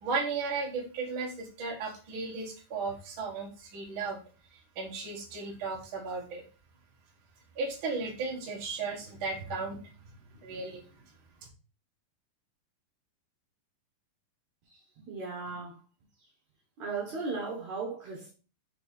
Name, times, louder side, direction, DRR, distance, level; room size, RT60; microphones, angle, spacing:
voice 1, 0.0-4.2 4.5-6.4 7.6-9.9 10.3-10.8, right 4 dB, 45° right, 1.9 m, -35 dB
voice 2, 14.7-15.8 16.8-18.3, right 4 dB, 60° right, 2.4 m, -37 dB
5.8 x 4.6 x 4.1 m
omnidirectional pair, 4.3 m